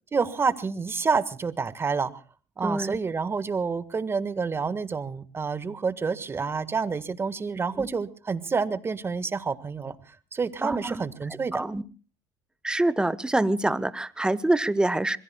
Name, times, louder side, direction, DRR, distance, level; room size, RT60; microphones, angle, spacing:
voice 1, 0.1-2.2 2.6-11.6, right 5 dB, 30° right, 12 dB, 1.6 m, -28 dB
voice 2, 2.6-3.0 7.8-7.9 10.6-11.0 11.5-11.8 12.6-15.2, right 2 dB, 10° right, 15 dB, 1.2 m, -25 dB
26.0 x 21.5 x 2.3 m, 0.36 s
supercardioid pair, 80°, 9 cm